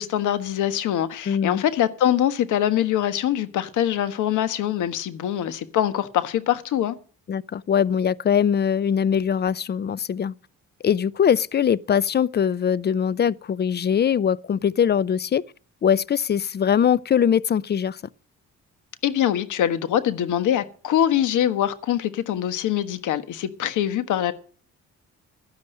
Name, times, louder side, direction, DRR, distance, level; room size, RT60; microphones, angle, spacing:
voice 1, 0.0-7.0 19.0-24.3, left 11 dB, 80° left, 1.4 m, -23 dB
voice 2, 1.3-1.6 7.3-10.3 10.8-15.4 15.8-18.0, left 8 dB, 35° left, 0.5 m, -22 dB
12.0 x 10.5 x 6.5 m
cardioid pair, 90°, 30 cm